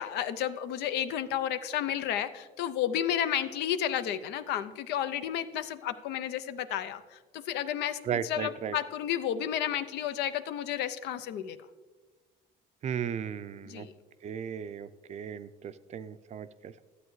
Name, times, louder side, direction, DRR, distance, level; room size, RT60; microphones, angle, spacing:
voice 1, 0.0-11.6 13.7-13.9, left 10 dB, 80° left, 12 dB, 0.5 m, -32 dB
voice 2, 8.0-8.8 12.8-13.9 14.2-16.8, right 8 dB, 45° right, 14 dB, 0.4 m, -36 dB
12.5 x 8.0 x 3.1 m, 1.3 s
cardioid pair, 110°, 17 cm